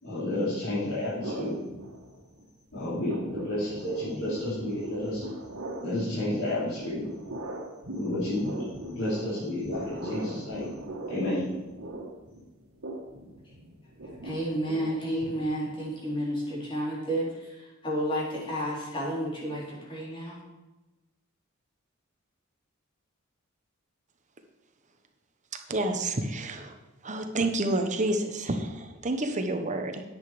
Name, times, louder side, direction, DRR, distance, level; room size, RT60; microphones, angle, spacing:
voice 1, 0.0-1.6 2.7-5.2 5.8-7.0 7.9-8.5 8.9-10.7 11.1-11.4, left 1 dB, 85° left, -11 dB, 3.9 m, -31 dB
sound 1, 1.2-2.5 2.7-15.9, right 1 dB, 85° right, 1.8 m, -40 dB
voice 2, 14.2-17.2 17.8-20.4, equal, 25° left, -5 dB, 3.3 m, -31 dB
voice 3, 25.7-26.7 27.0-30.0, right 2 dB, 35° right, 5 dB, 1.0 m, -29 dB
10.0 x 8.1 x 5.0 m, 1.1 s
head